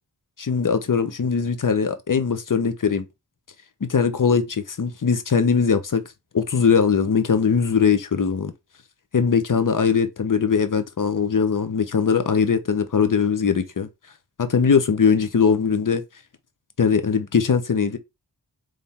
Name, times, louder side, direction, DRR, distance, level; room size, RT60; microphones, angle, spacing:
voice 1, 0.4-3.0 3.8-6.0 6.3-8.5 9.1-13.9 14.4-16.0 16.8-18.0, left 6 dB, 50° left, 0.8 m, -20 dB
3.6 x 3.3 x 4.2 m
wide cardioid pair, 60°, 40 cm